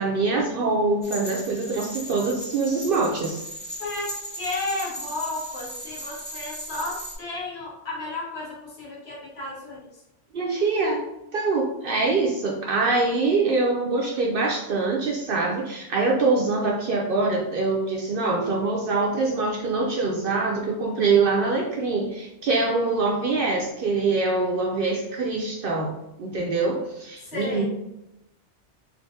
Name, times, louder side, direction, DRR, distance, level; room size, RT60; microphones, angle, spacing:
voice 1, 0.0-3.4 10.3-11.0 11.3-25.9 26.2-27.6, right 3 dB, 60° right, -1 dB, 0.7 m, -24 dB
sound 1, 1.0-7.2, equal, 10° left, 0.6 m, -37 dB
voice 2, 3.8-9.9 27.2-27.6, left 2 dB, 60° left, -5 dB, 1.3 m, -33 dB
3.6 x 2.6 x 2.6 m, 0.88 s
omnidirectional pair, 1.2 m